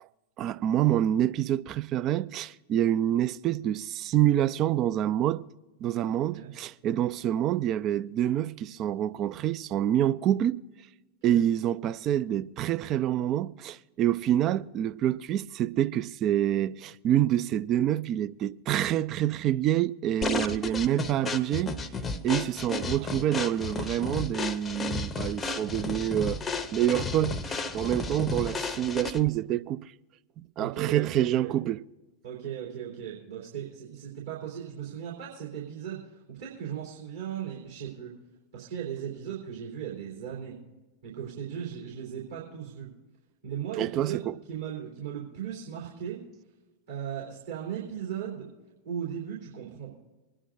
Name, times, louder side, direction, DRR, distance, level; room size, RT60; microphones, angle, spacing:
voice 1, 0.4-5.4 5.8-10.6 11.2-21.7 22.2-29.9 30.6-31.8 43.8-44.3, right 11 dB, 35° right, 0.4 m, -27 dB
sound 1, 20.2-29.4, left 3 dB, 20° left, 0.7 m, -33 dB
voice 2, 23.0-23.6 30.6-31.5 32.2-38.1 38.5-40.6 41.0-42.9 43.4-46.2 46.9-48.5 48.8-50.0, right 9 dB, 65° right, 3.5 m, -37 dB
25.0 x 10.0 x 2.6 m
figure-of-eight pair, 90°, 0 cm